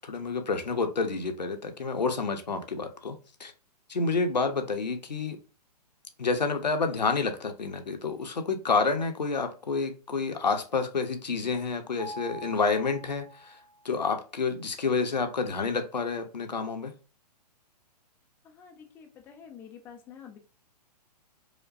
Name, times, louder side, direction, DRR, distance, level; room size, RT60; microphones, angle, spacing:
voice 1, 0.0-3.5 3.9-5.4 6.2-13.6 13.8-16.9, left 4 dB, 85° left, 0.7 m, -29 dB
Mallet percussion, 12.0-14.0, equal, 70° right, 1.3 m, -44 dB
voice 2, 18.4-20.4, left 7 dB, 10° left, 0.3 m, -48 dB
5.0 x 2.2 x 2.5 m
figure-of-eight pair, 120°, 21 cm